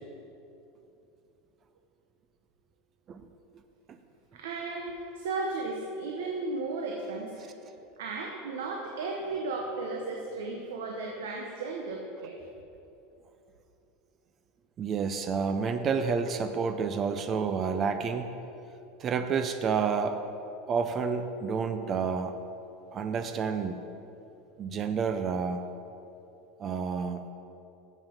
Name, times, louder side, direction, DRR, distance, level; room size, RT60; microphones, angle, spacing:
voice 1, 4.3-7.5 8.0-12.3, right 3 dB, 85° right, 0 dB, 0.9 m, -35 dB
voice 2, 14.8-18.3 19.0-20.2 20.7-22.3 22.9-23.8 24.6-25.6 26.6-27.3, right 5 dB, 35° right, 9 dB, 0.5 m, -29 dB
7.2 x 5.6 x 6.8 m, 2.8 s
supercardioid pair, 120°, 0 cm